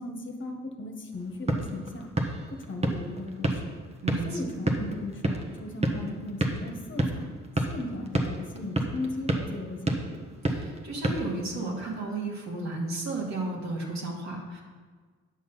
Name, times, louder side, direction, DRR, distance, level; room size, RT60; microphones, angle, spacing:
voice 1, 0.0-2.1 2.6-3.6 4.2-7.3 7.7-10.2, left 2 dB, 40° left, 2 dB, 1.5 m, -37 dB
sound 1, 1.1-11.9, right 2 dB, 20° right, 1.2 m, -31 dB
voice 2, 4.0-4.4 10.5-14.6, right 2 dB, 65° right, -1 dB, 2.4 m, -33 dB
9.8 x 6.4 x 5.7 m, 1.5 s
cardioid pair, 90°, 30 cm